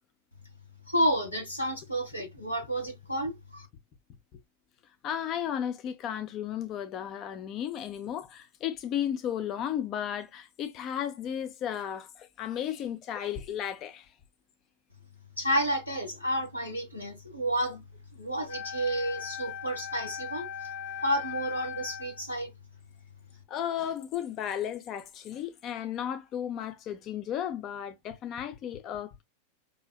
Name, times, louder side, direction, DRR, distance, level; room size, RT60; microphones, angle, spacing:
voice 1, 0.9-3.7 15.4-17.8 18.2-20.5 21.0-22.5, equal, 85° left, 1.6 m, -30 dB
voice 2, 5.0-14.1 23.5-29.2, left 10 dB, 35° left, 0.4 m, -34 dB
Wind instrument woodwind instrument, 18.5-22.3, left 9 dB, 50° left, 2.2 m, -39 dB
5.5 x 2.6 x 2.2 m
figure-of-eight pair, 90°, 0 cm